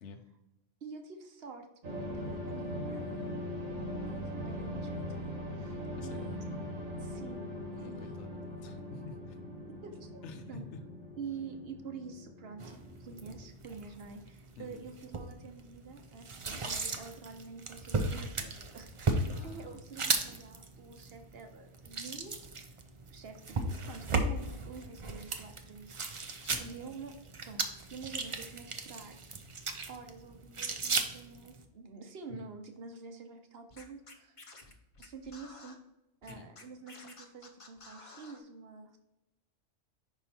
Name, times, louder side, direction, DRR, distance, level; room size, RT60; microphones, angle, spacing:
voice 1, 0.8-3.4 4.0-6.4 7.0-7.5 7.8-8.4 9.7-10.6 11.2-12.7 13.0-22.7 23.1-27.1 27.4-29.2 29.9-34.4 35.0-35.8 36.2-39.0, right 5 dB, 55° right, 6 dB, 1.0 m, -48 dB
sound 1, 1.8-13.5, equal, 90° right, 2.0 m, -41 dB
voice 2, 6.0-6.4 7.7-9.6 10.2-10.8 14.6-14.8 19.3-19.8 26.4-26.6 32.3-32.4 36.4-36.5, left 4 dB, 65° left, 6 dB, 1.0 m, -49 dB
sound 2, 12.6-31.6, right 3 dB, 40° right, 0.4 m, -37 dB
Scratching (performance technique), 33.7-35.7 36.2-38.4, left 3 dB, 30° left, 0.7 m, -52 dB
5.5 x 4.9 x 4.3 m, 0.93 s
omnidirectional pair, 1.3 m